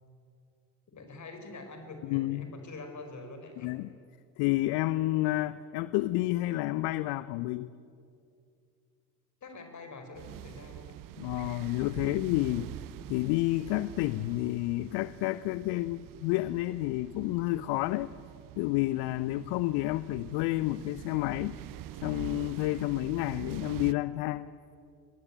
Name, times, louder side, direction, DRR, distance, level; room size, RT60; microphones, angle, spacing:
voice 1, 0.9-3.7 9.4-10.9, left 3 dB, 35° left, 6 dB, 5.2 m, -45 dB
voice 2, 2.1-2.5 3.6-3.9 4.4-7.7 11.2-12.7 13.1-18.1 18.6-21.6 22.0-24.5, left 18 dB, 50° left, 17 dB, 0.7 m, -30 dB
sound 1, 10.1-23.9, right 14 dB, 40° right, 0.8 m, -45 dB
25.0 x 20.0 x 8.7 m, 2.4 s
figure-of-eight pair, 65°, 49 cm